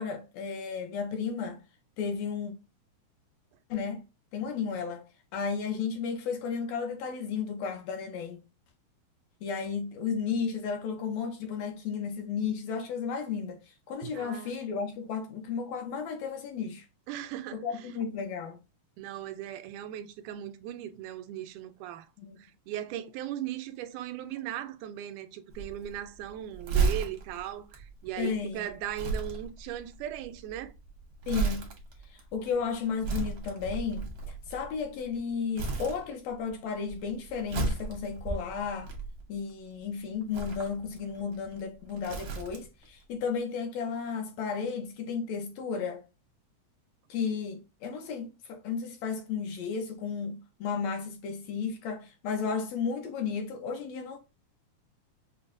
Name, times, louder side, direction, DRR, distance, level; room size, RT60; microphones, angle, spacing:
voice 1, 0.0-1.6 2.0-2.5 3.7-4.0 4.3-5.0 5.3-8.4 9.4-16.9 17.6-18.6 22.2-22.4 28.2-28.6 31.3-31.7 32.1-38.9 39.3-46.0 47.1-54.2, left 6 dB, 75° left, 1.7 m, -33 dB
voice 2, 14.0-14.5 17.1-17.9 19.0-22.1 22.4-30.7, right 11 dB, 85° right, 2.0 m, -38 dB
Crumpling crinkling, 25.5-35.2 35.5-36.5 36.8-39.5 40.2-42.9 43.2-43.3, right 4 dB, 65° right, 1.1 m, -34 dB
5.9 x 2.2 x 2.5 m
omnidirectional pair, 3.5 m